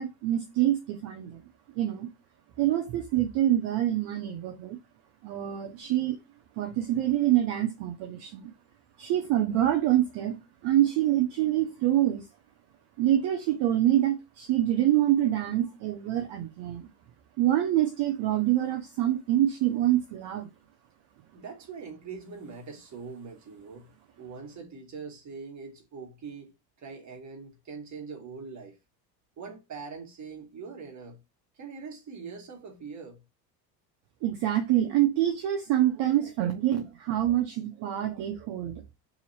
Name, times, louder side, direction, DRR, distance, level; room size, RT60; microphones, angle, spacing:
voice 1, 0.0-1.4 1.7-2.1 2.6-4.8 5.2-6.2 6.6-8.5 9.0-10.4 10.6-12.2 13.0-16.9 17.4-20.5 34.2-38.8, right 13 dB, 55° right, 0.8 m, -26 dB
voice 2, 21.3-23.9 24.2-26.5 26.8-28.8 29.4-31.2 31.5-33.2, right 5 dB, 35° right, 1.6 m, -42 dB
2.8 x 2.8 x 4.1 m
hypercardioid pair, 85°, 50 cm